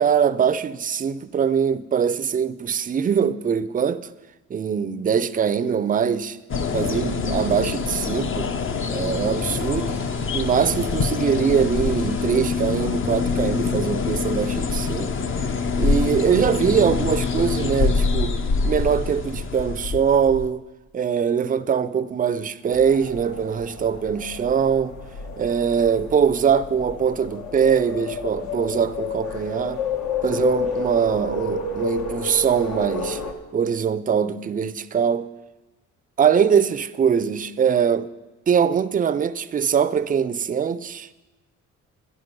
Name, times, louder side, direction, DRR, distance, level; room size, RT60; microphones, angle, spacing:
voice 1, 0.0-4.1 4.5-6.4 6.7-8.5 8.9-10.0 10.3-15.1 15.8-18.4 18.6-20.6 20.9-24.9 25.4-29.8 30.2-33.2 33.5-35.3 36.2-38.1 38.5-41.1, right 7 dB, 30° right, 0.5 m, -22 dB
sound 1, 6.5-20.5, left 4 dB, 40° left, 0.8 m, -25 dB
sound 2, 9.3-12.6, left 3 dB, 90° left, 1.6 m, -44 dB
sound 3, 22.7-33.3, left 4 dB, 70° left, 1.4 m, -31 dB
11.0 x 11.0 x 5.3 m
cardioid pair, 90°, 30 cm